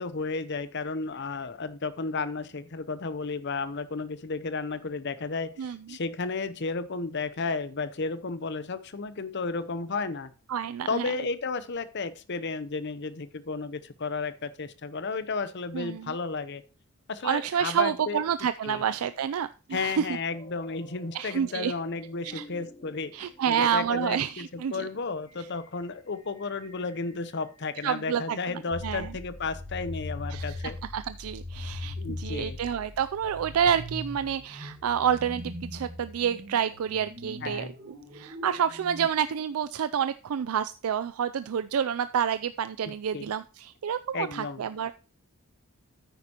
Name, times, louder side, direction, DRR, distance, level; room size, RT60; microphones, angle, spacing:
voice 1, 0.0-10.3 10.9-16.6 17.1-18.2 18.6-18.8 19.7-30.8 32.0-32.6 37.4-37.7 42.8-43.3 44.1-44.6, left 4 dB, 50° left, 14 dB, 0.7 m, -33 dB
voice 2, 5.6-6.0 10.5-11.1 15.7-16.1 17.2-20.1 21.1-21.7 22.2-22.4 23.1-24.9 27.8-28.4 28.8-29.1 30.3-30.6 30.9-37.7 38.1-44.9, right 8 dB, 75° right, 13 dB, 0.4 m, -28 dB
sound 1, 20.3-29.2, equal, 20° left, 3.0 m, -52 dB
sound 2, 28.7-39.1, left 1 dB, 40° right, 1.4 m, -40 dB
9.6 x 9.1 x 2.9 m, 0.34 s
head